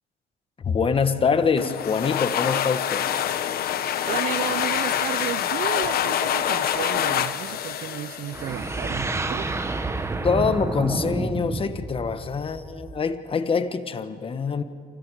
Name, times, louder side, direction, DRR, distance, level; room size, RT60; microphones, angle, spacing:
voice 1, 0.6-3.1 10.2-14.6, left 5 dB, 30° left, 1.4 m, -24 dB
sound 1, 1.6-9.1, left 10 dB, 65° left, 1.2 m, -26 dB
voice 2, 4.1-9.5, right 12 dB, 60° right, 0.6 m, -33 dB
sound 2, 8.3-13.2, right 3 dB, 15° right, 1.3 m, -29 dB
28.0 x 27.5 x 4.9 m
cardioid pair, 110°, 17 cm